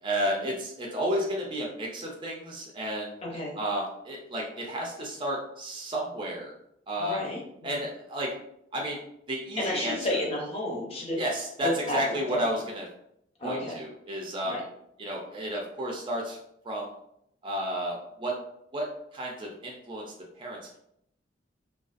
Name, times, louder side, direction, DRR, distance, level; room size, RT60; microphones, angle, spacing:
voice 1, 0.0-3.2 3.6-6.5 6.9-7.2 7.6-8.4 8.7-9.0 9.3-9.9 11.2-12.9 13.4-14.5 15.0-16.4 16.6-16.9 17.4-18.4 18.7-18.9 19.1-20.0 20.4-20.8, equal, 25° right, -1 dB, 0.4 m, -32 dB
voice 2, 3.2-3.6 7.0-7.9 9.6-11.2 11.6-12.0 12.3-12.4 13.4-13.8 14.4-14.6, left 1 dB, 35° left, -1 dB, 0.6 m, -32 dB
2.4 x 2.3 x 2.4 m, 0.73 s
head